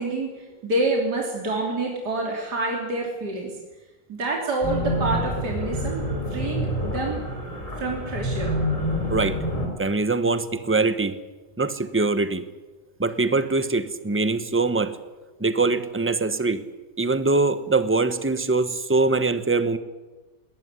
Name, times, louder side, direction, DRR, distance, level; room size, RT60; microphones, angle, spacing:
voice 1, 0.0-3.6 4.1-6.0 6.3-7.2 7.8-8.5, right 2 dB, 65° right, -1 dB, 3.8 m, -27 dB
sound 1, 4.6-9.7, equal, 20° left, 4.5 m, -27 dB
voice 2, 9.1-9.4 9.8-11.1 11.6-12.4 13.0-15.0 15.4-16.6 17.0-19.8, right 3 dB, 10° right, 11 dB, 0.9 m, -23 dB
20.5 x 19.0 x 9.7 m, 1.2 s
omnidirectional pair, 1.9 m